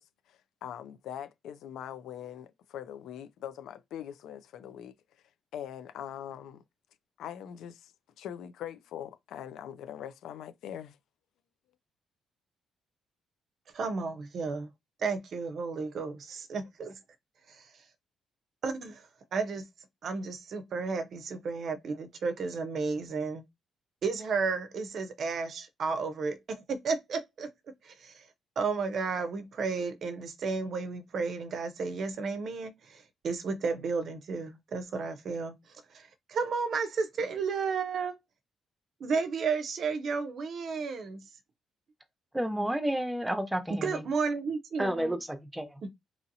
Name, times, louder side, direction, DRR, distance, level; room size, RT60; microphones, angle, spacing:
voice 1, 0.3-4.9 5.5-6.6 7.2-11.0, left 10 dB, 80° left, 0.3 m, -42 dB
voice 2, 13.7-14.7 15.0-17.0 17.5-17.7 18.6-19.1 19.3-19.7 20.0-23.4 24.0-27.5 27.8-28.3 28.6-35.5 35.9-38.2 39.0-41.2 43.7-45.2 45.8-45.9, right 4 dB, 60° right, 0.5 m, -33 dB
voice 3, 42.3-44.1 44.8-45.8, right 1 dB, 5° right, 0.7 m, -31 dB
2.8 x 2.7 x 2.6 m
cardioid pair, 90°, 0 cm